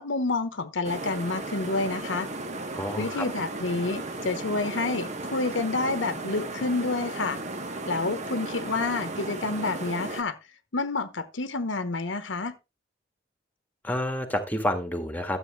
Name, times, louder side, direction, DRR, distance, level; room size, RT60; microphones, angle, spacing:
voice 1, 0.0-2.3 3.0-7.4 7.9-10.4 10.7-12.5, left 3 dB, 85° left, 1.1 m, -29 dB
sound 1, 0.8-10.2, right 2 dB, 35° right, 1.3 m, -35 dB
voice 2, 2.7-3.3 13.8-15.4, left 1 dB, 10° left, 1.8 m, -29 dB
12.5 x 8.2 x 3.2 m
head